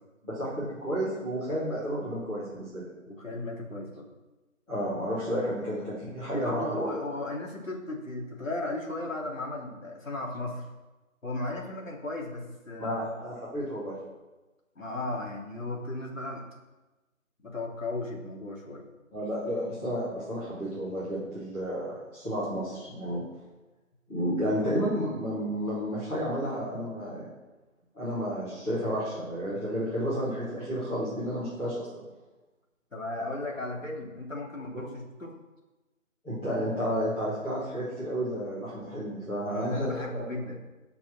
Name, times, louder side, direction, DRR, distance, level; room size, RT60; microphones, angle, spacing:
voice 1, 0.2-2.8 4.7-6.9 12.8-13.9 19.1-23.2 24.1-27.3 27.9-32.0 34.7-34.9 36.2-40.2, equal, 5° left, -15 dB, 2.3 m, -31 dB
voice 2, 3.1-4.1 6.3-10.6 11.2-13.1 14.7-16.4 17.4-18.8 32.9-35.3 39.5-40.6, left 2 dB, 70° left, -1 dB, 3.3 m, -35 dB
12.5 x 6.0 x 6.4 m, 1.1 s
figure-of-eight pair, 155°, 41 cm